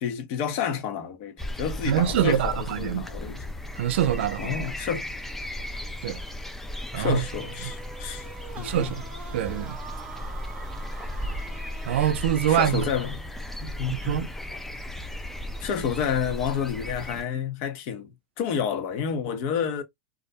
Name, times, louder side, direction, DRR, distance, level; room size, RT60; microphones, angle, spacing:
voice 1, 0.0-3.4 4.4-5.1 6.9-8.3 8.6-8.9 12.5-13.2 13.6-14.3 15.6-18.1 18.4-19.8, left 7 dB, 55° left, 0.7 m, -29 dB
sound 1, 1.4-17.2, left 1 dB, 5° left, 0.3 m, -36 dB
voice 2, 1.9-3.1 3.8-4.7 6.0-6.2 6.9-7.2 8.6-9.0 9.3-9.8 11.9-12.8 14.0-14.3, right 11 dB, 80° right, 0.4 m, -25 dB
sound 2, 7.1-13.4, right 5 dB, 25° right, 0.7 m, -45 dB
2.4 x 2.1 x 2.6 m
supercardioid pair, 125°, 6 cm